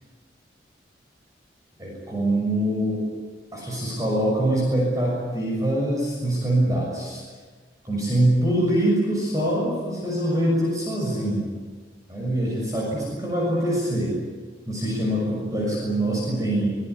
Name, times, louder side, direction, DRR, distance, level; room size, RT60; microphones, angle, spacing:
voice 1, 1.8-3.0 3.5-7.3 7.8-11.5 12.1-14.2 14.7-16.8, right 1 dB, 20° right, -3 dB, 6.6 m, -24 dB
24.0 x 19.5 x 9.7 m, 1.4 s
head